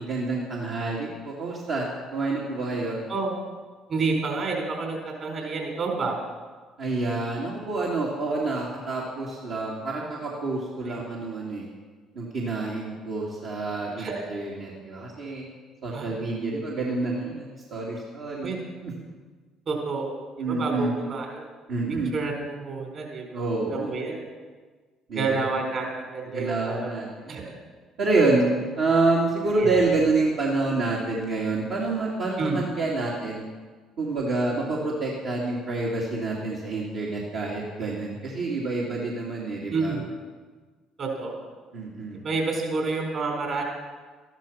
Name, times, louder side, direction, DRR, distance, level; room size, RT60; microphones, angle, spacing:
voice 1, 0.0-3.0 6.8-11.7 12.1-15.5 15.8-18.5 18.8-19.1 20.4-20.9 21.7-22.1 23.3-23.9 25.1-25.4 26.3-27.5 28.0-28.5 28.8-33.4 34.0-39.9 41.7-42.2, right 3 dB, 70° right, -6 dB, 2.7 m, -27 dB
voice 2, 3.9-6.2 10.8-11.1 14.0-14.2 15.9-16.2 18.4-18.6 19.7-21.5 22.1-23.4 23.7-24.3 25.1-26.9 27.3-27.5 29.6-29.9 32.4-32.7 39.7-40.0 41.0-41.4 42.2-43.6, right 4 dB, 50° right, 1 dB, 4.4 m, -29 dB
13.5 x 12.0 x 5.7 m, 1.4 s
hypercardioid pair, 60°, 0 cm